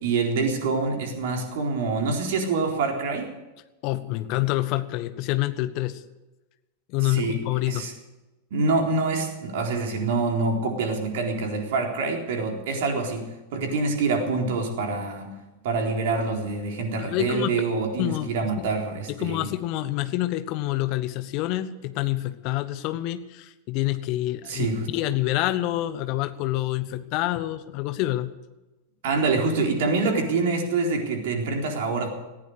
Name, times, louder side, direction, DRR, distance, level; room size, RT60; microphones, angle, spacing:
voice 1, 0.0-3.3 7.0-7.4 7.7-7.9 8.5-13.3 13.5-15.3 15.6-19.5 24.5-24.9 29.0-32.1, right 3 dB, 55° right, 2 dB, 4.0 m, -26 dB
voice 2, 3.8-6.0 6.9-7.9 17.0-17.5 18.0-18.5 19.1-24.7 24.9-28.3, left 16 dB, 40° left, 13 dB, 1.2 m, -27 dB
19.0 x 15.5 x 4.9 m, 1.1 s
figure-of-eight pair, 90°, 0 cm